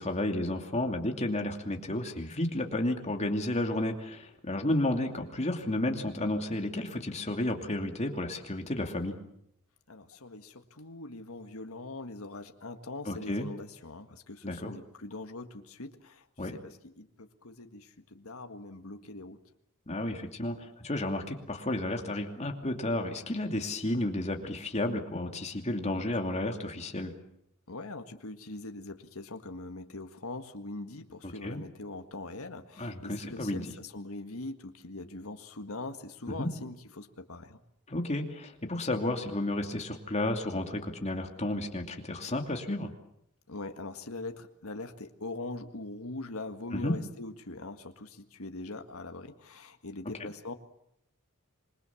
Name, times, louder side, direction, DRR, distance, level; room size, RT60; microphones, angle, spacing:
voice 1, 0.0-9.1 13.1-13.5 14.4-14.7 16.4-16.6 19.9-27.1 31.2-31.6 32.8-33.6 36.3-36.5 37.9-42.9 46.7-47.0 50.2-50.3, left 1 dB, 30° left, 4 dB, 2.7 m, -32 dB
voice 2, 9.9-19.4 27.7-37.6 43.5-50.5, left 2 dB, 70° left, 7 dB, 1.7 m, -42 dB
27.0 x 22.0 x 7.1 m, 0.75 s
head